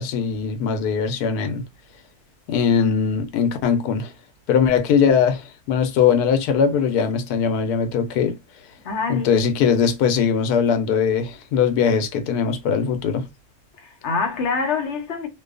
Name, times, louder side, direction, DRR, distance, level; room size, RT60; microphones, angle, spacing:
voice 1, 0.0-1.6 2.5-4.1 4.5-8.4 9.1-13.3, left 6 dB, 90° left, 1.1 m, -20 dB
voice 2, 8.8-9.3 13.8-15.3, left 4 dB, 60° left, 0.9 m, -25 dB
2.7 x 2.2 x 2.3 m
omnidirectional pair, 1.6 m